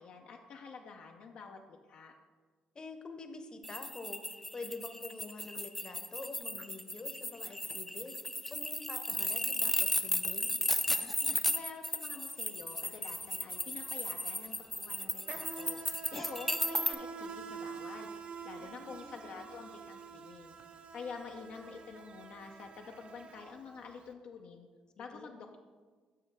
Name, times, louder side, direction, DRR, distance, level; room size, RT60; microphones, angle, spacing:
voice 1, 0.0-2.1 11.5-15.8 16.1-18.1 18.4-20.5 20.9-24.7 25.0-25.6, left 5 dB, 65° left, 2 dB, 0.5 m, -48 dB
voice 2, 2.7-4.2 4.5-8.1 8.5-10.5 18.6-19.5 25.0-25.4, left 3 dB, 35° left, 7 dB, 0.8 m, -47 dB
sound 1, 3.6-16.9, left 1 dB, 5° left, 0.4 m, -35 dB
Insect, 12.6-12.8 13.0-24.0, right 5 dB, 55° right, 0.6 m, -47 dB
7.5 x 6.2 x 3.4 m, 1.5 s
supercardioid pair, 60°, 2 cm